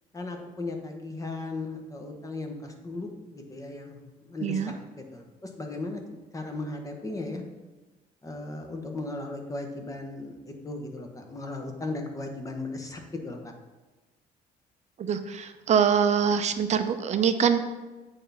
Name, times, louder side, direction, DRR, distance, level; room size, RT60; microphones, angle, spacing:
voice 1, 0.1-4.6 5.0-7.4 8.2-13.5, left 2 dB, 20° left, 3 dB, 1.1 m, -36 dB
voice 2, 4.4-4.7 15.0-17.6, right 7 dB, 40° right, 9 dB, 0.6 m, -24 dB
8.4 x 3.5 x 5.6 m, 1.2 s
cardioid pair, 110°, 17 cm